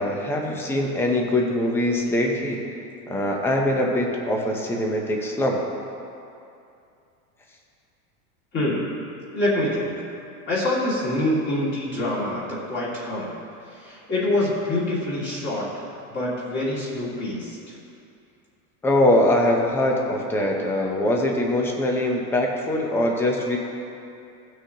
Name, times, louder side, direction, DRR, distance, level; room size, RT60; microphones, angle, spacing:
voice 1, 0.0-2.6 3.1-5.6 18.8-23.6, left 1 dB, 5° left, 0 dB, 0.6 m, -22 dB
voice 2, 8.5-8.9 9.3-10.1 10.5-13.3 13.7-15.8 16.1-17.8, left 1 dB, 25° left, -7 dB, 2.1 m, -26 dB
17.5 x 6.3 x 2.8 m, 2.6 s
supercardioid pair, 170°, 42 cm